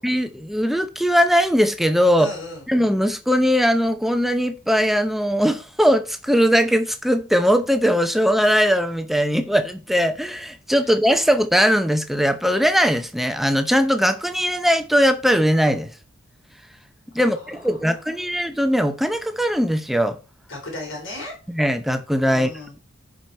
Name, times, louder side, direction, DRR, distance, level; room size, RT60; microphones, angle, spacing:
voice 1, 0.0-2.3 2.7-15.9 17.1-20.2 21.5-22.5, equal, ahead, 0.7 m, -20 dB
voice 2, 2.2-2.7 17.2-18.3 20.5-21.3 22.3-22.7, left 1 dB, 80° left, 4.3 m, -36 dB
10.5 x 5.0 x 4.4 m
head